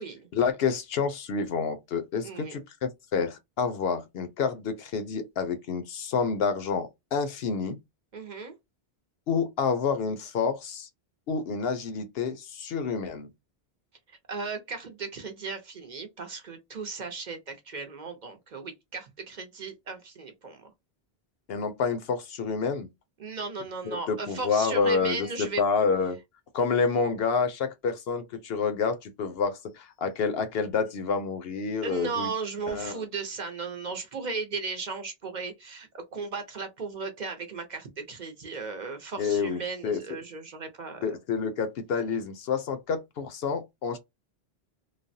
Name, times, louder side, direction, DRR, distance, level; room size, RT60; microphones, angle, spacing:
voice 1, 0.3-7.8 9.3-10.9 11.3-13.3 21.5-22.9 23.8-26.2 26.5-32.3 32.7-32.9 39.2-40.0 41.0-44.0, left 5 dB, 70° left, 0.8 m, -28 dB
voice 2, 2.2-2.6 8.1-8.5 14.1-20.7 23.2-25.6 31.8-41.2, right 4 dB, 50° right, 0.7 m, -36 dB
3.2 x 2.0 x 2.6 m
omnidirectional pair, 1.1 m